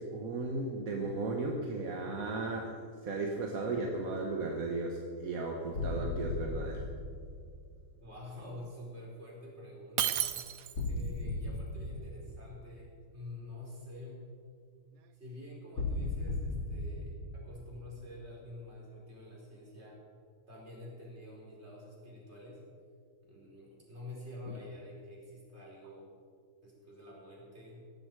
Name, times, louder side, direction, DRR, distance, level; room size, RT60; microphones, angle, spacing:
voice 1, 0.0-6.9, right 3 dB, 45° right, 2 dB, 1.4 m, -35 dB
sound 1, 5.7-7.8 10.7-12.8 15.7-18.3, left 2 dB, 60° left, 4.5 m, -37 dB
voice 2, 8.0-10.5 10.8-14.3 15.1-20.0 20.5-22.6 23.2-26.1 26.6-27.9, left 2 dB, 30° right, -4 dB, 4.7 m, -48 dB
Shatter, 10.0-11.0, right 11 dB, 90° right, 0.7 m, -32 dB
17.5 x 14.0 x 4.7 m, 2.2 s
omnidirectional pair, 2.4 m